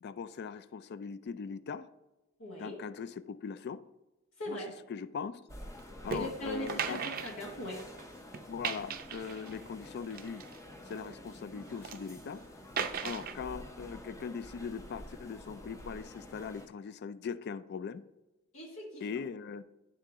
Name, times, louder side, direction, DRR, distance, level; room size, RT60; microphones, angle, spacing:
voice 1, 0.0-1.9 2.6-3.8 4.5-4.6 4.9-5.4 6.0-7.0 8.5-10.5 10.9-12.4 13.0-18.0 19.0-19.6, left 6 dB, 50° left, 0.3 m, -40 dB
voice 2, 2.4-2.8 4.4-4.7 6.1-7.9 18.5-19.2, left 1 dB, 65° left, 1.3 m, -40 dB
sound 1, 5.5-16.7, left 1 dB, 15° left, 0.7 m, -49 dB
sound 2, 6.1-6.3 6.7-8.0 8.3-9.6 10.1-11.2 11.6-12.0 12.8-13.4, right 7 dB, 45° right, 0.5 m, -37 dB
10.5 x 3.7 x 3.6 m
head